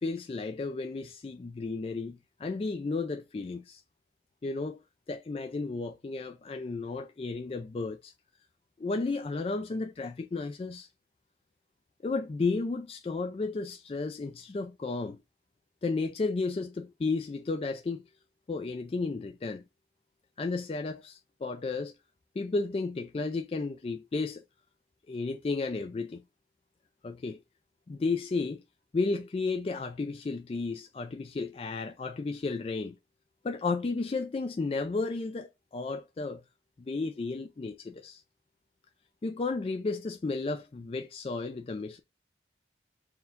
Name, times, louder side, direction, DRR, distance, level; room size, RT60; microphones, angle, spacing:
voice 1, 0.0-3.8 4.4-4.8 5.1-8.1 8.8-10.9 12.0-15.2 15.8-18.0 18.5-19.6 20.4-21.9 22.4-24.4 25.1-26.2 27.0-27.4 27.9-28.6 28.9-32.9 33.4-36.4 36.8-38.2 39.2-42.0, left 3 dB, 35° left, 0.3 m, -33 dB
4.4 x 2.2 x 3.6 m
head